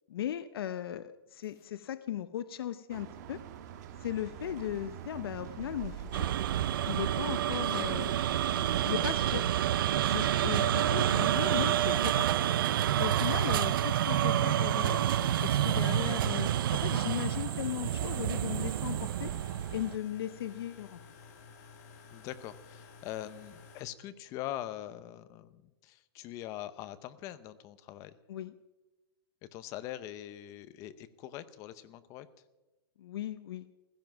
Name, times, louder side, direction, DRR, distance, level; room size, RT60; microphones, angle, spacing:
voice 1, 0.1-3.4 4.0-6.3 6.8-8.2 8.8-9.4 10.0-12.5 12.9-15.0 15.4-19.3 19.7-21.0 28.3-28.5 33.0-33.7, left 11 dB, 70° left, 13 dB, 0.7 m, -37 dB
sound 1, 2.9-10.3, right 9 dB, 45° right, 1.5 m, -42 dB
sound 2, 6.1-20.0, right 11 dB, 60° right, 0.6 m, -29 dB
voice 2, 10.5-10.9 22.1-28.1 29.5-32.3, left 13 dB, 25° left, 13 dB, 0.7 m, -43 dB
sound 3, 14.0-23.8, left 5 dB, 40° left, 2.1 m, -53 dB
15.5 x 15.0 x 6.0 m, 1.1 s
supercardioid pair, 170°, 13 cm